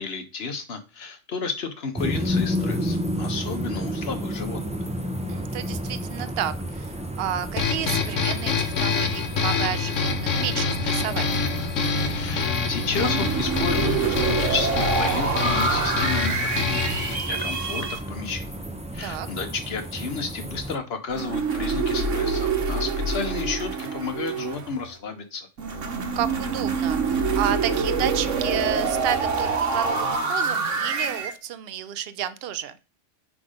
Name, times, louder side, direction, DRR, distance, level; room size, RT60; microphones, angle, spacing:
voice 1, 0.0-4.6 12.1-16.8 17.2-18.5 18.9-25.5, left 4 dB, 55° left, 8 dB, 1.2 m, -32 dB
sound 1, 1.9-20.7, equal, 10° right, 0.5 m, -32 dB
voice 2, 5.3-11.4 19.0-19.3 26.2-32.7, right 10 dB, 60° right, 13 dB, 0.8 m, -31 dB
sound 2, 7.6-17.2, left 5 dB, 85° left, 1.4 m, -26 dB
sound 3, 12.9-18.0 21.1-24.9 25.6-31.3, right 4 dB, 80° right, 1.5 m, -26 dB
5.8 x 3.7 x 5.0 m, 0.31 s
omnidirectional pair, 1.3 m